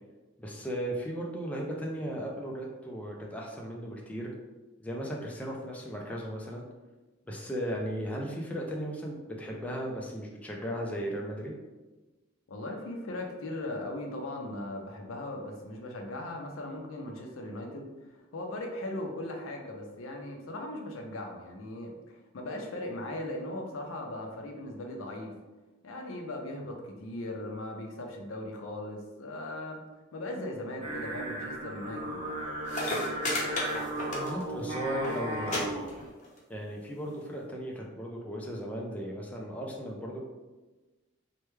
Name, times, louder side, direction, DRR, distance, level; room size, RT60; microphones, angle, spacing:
voice 1, 0.4-4.3 4.8-6.7 7.3-11.5 34.0-35.7 36.5-40.2, equal, 5° left, -2 dB, 0.3 m, -36 dB
voice 2, 12.5-25.3 25.8-29.8 30.1-32.3, left 1 dB, 85° left, 2 dB, 0.6 m, -38 dB
Singing, 30.8-36.0, right 1 dB, 25° right, 0.9 m, -36 dB
sound 1, 32.4-32.5 32.7-34.6 34.9-35.1 35.5-35.6 35.9-36.4 37.2-37.3, left 1 dB, 35° left, 0.7 m, -32 dB
3.2 x 2.2 x 3.1 m, 1.2 s
head